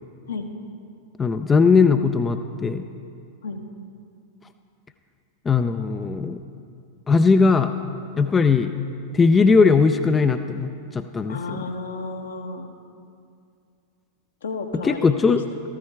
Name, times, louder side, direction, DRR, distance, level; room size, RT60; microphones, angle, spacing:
voice 1, 1.2-2.9 5.5-6.4 7.1-7.7 8.2-8.7 9.1-11.4 14.8-15.4, left 4 dB, 15° left, 8 dB, 0.4 m, -19 dB
voice 2, 11.3-12.7 14.4-15.4, left 3 dB, 65° left, 4 dB, 1.1 m, -32 dB
14.5 x 13.5 x 3.4 m, 2.4 s
figure-of-eight pair, 90°, 0 cm